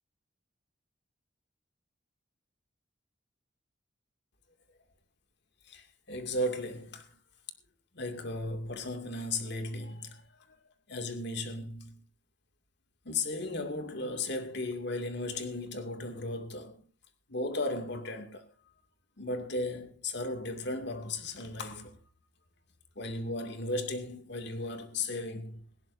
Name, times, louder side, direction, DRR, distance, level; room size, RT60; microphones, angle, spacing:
voice 1, 5.6-7.1 7.9-10.6 10.9-12.0 13.0-16.8 17.3-18.5 19.2-22.0 23.0-25.6, left 2 dB, 65° left, 2.4 m, -36 dB
19.0 x 16.5 x 2.7 m
head